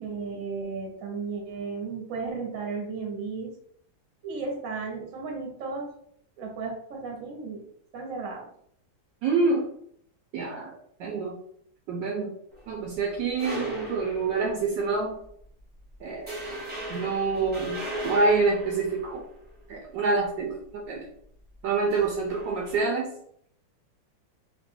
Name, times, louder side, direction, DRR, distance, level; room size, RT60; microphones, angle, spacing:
voice 1, 0.0-3.5 4.2-5.9 6.4-7.7 7.9-8.5, right 4 dB, 50° right, 0 dB, 1.2 m, -34 dB
voice 2, 9.2-9.7 10.3-10.7 11.0-11.4 11.9-12.3 12.7-15.2 16.0-16.4 16.9-19.2 19.7-21.1 21.6-23.1, right 4 dB, 75° right, 0 dB, 1.2 m, -27 dB
sound 1, 12.5-14.8 15.2-15.4 15.8-15.9 16.3-19.7 21.8-22.8, equal, 5° right, 0.8 m, -37 dB
3.2 x 2.4 x 3.6 m, 0.66 s
omnidirectional pair, 2.1 m